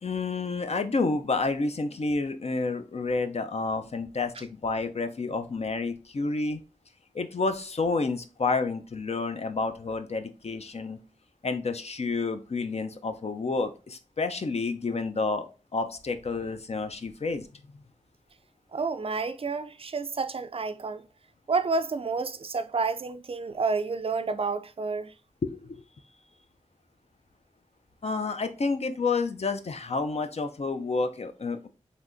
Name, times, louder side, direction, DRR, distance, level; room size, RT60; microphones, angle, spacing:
voice 1, 0.0-6.6 7.1-11.0 11.4-15.5 15.7-17.5 25.4-25.8 28.0-31.7, left 3 dB, 55° left, 0.4 m, -29 dB
voice 2, 18.7-21.0 21.5-25.1, right 4 dB, 45° right, 0.3 m, -29 dB
3.4 x 2.7 x 2.5 m
cardioid pair, 40°, 13 cm